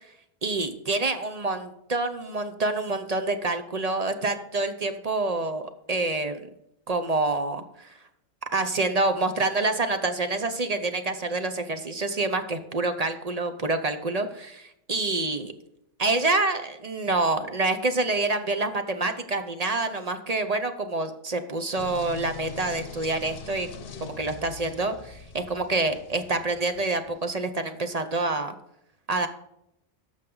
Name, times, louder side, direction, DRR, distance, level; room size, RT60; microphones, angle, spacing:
voice 1, 0.4-6.5 6.9-7.9 8.5-15.5 16.0-23.7 24.0-28.6 29.1-29.3, right 2 dB, 40° right, 8 dB, 0.8 m, -27 dB
sound 1, 21.8-27.3, left 5 dB, 60° left, 0.9 m, -43 dB
11.5 x 6.7 x 3.9 m, 0.82 s
omnidirectional pair, 1.1 m